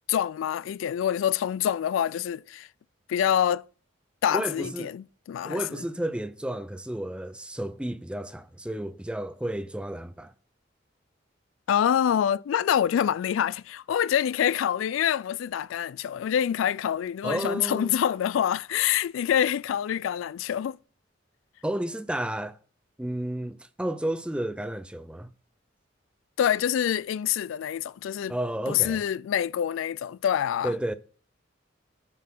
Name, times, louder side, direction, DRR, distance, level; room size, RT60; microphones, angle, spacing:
voice 1, 0.1-2.7 3.1-3.6 4.2-5.8 11.7-20.8 26.4-28.3 28.7-30.7, left 9 dB, 90° left, 0.3 m, -26 dB
voice 2, 4.3-4.9 5.5-10.3 17.2-17.9 21.6-22.6 23.0-25.3 28.3-29.0 30.6-30.9, right 1 dB, 5° right, 0.4 m, -32 dB
9.2 x 4.2 x 5.5 m
head